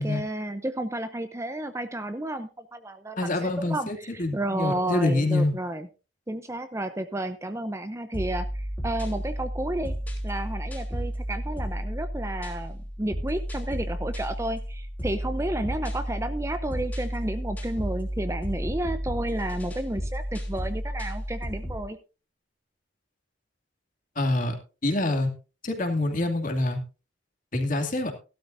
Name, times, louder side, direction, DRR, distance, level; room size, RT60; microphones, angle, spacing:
voice 1, 0.0-5.9 6.3-9.9 10.2-22.0, right 1 dB, 15° right, 10 dB, 0.6 m, -32 dB
voice 2, 3.2-5.5 24.2-24.5 24.8-25.3 25.6-26.8 27.5-28.1, left 2 dB, 45° left, 4 dB, 2.4 m, -26 dB
sound 1, 8.1-21.9, equal, 10° left, 3.1 m, -32 dB
16.0 x 12.5 x 2.6 m, 0.32 s
head